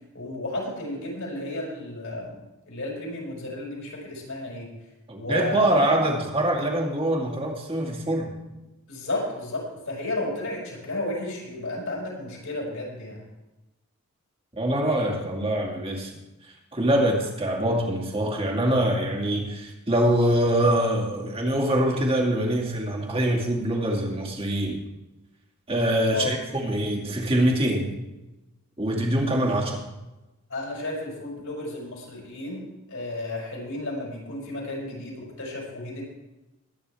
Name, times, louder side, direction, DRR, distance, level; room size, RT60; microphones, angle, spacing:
voice 1, 0.1-2.4 2.7-4.7 5.1-5.9 8.9-13.2 26.1-26.3 30.5-36.0, left 2 dB, 70° left, -3 dB, 5.7 m, -33 dB
voice 2, 5.1-8.3 14.6-16.1 16.7-24.8 25.7-27.9 28.8-29.8, right 1 dB, 25° right, 0 dB, 2.4 m, -24 dB
22.0 x 9.4 x 3.5 m, 1.0 s
head